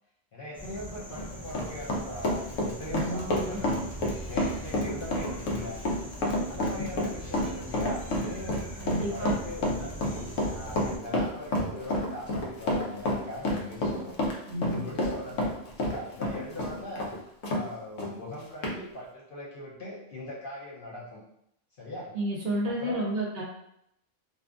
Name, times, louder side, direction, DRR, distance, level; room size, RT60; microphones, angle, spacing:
voice 1, 0.3-3.8 4.0-5.8 6.5-14.1 14.5-15.5 15.8-17.1 17.5-21.2 21.8-22.1 22.7-23.1, left 1 dB, 55° left, -5 dB, 0.7 m, -40 dB
sound 1, 0.5-11.0, right 1 dB, 5° left, 0.4 m, -42 dB
Run, 1.0-17.6 18.0-18.1 18.6-18.8, left 1 dB, 85° left, 1.0 m, -29 dB
voice 2, 2.9-3.6 8.8-9.3 14.5-14.8 22.1-23.4, right 1 dB, 60° right, -3 dB, 0.7 m, -31 dB
2.6 x 2.3 x 2.4 m, 0.74 s
omnidirectional pair, 1.3 m